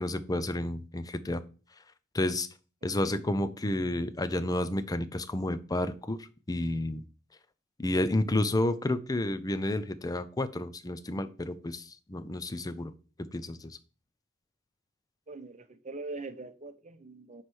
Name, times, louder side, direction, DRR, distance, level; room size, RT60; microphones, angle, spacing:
voice 1, 0.0-1.4 2.1-2.5 2.8-6.2 6.5-7.0 7.8-12.9 13.3-13.8, left 1 dB, 20° left, 0.6 m, -30 dB
voice 2, 2.8-3.2 15.3-17.4, right 3 dB, 35° right, 0.9 m, -43 dB
9.8 x 3.3 x 6.2 m
head